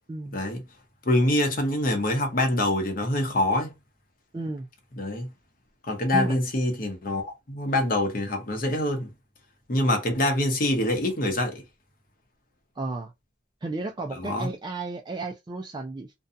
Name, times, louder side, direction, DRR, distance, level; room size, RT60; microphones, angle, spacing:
voice 1, 0.1-0.4 4.3-4.7 6.1-6.4 12.8-13.1 13.6-16.1, right 2 dB, 25° right, 0.3 m, -33 dB
voice 2, 1.0-3.7 5.0-5.3 5.9-9.1 9.7-11.6 14.2-14.5, left 1 dB, 50° left, 0.9 m, -25 dB
2.7 x 2.2 x 2.5 m
head